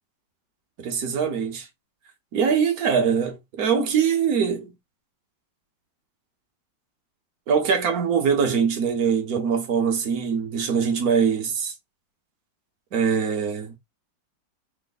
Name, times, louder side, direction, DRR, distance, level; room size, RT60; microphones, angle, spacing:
voice 1, 0.8-1.7 2.3-4.7 7.5-11.7 12.9-13.7, right 6 dB, 55° right, 1.3 m, -23 dB
4.3 x 2.1 x 4.0 m
omnidirectional pair, 2.0 m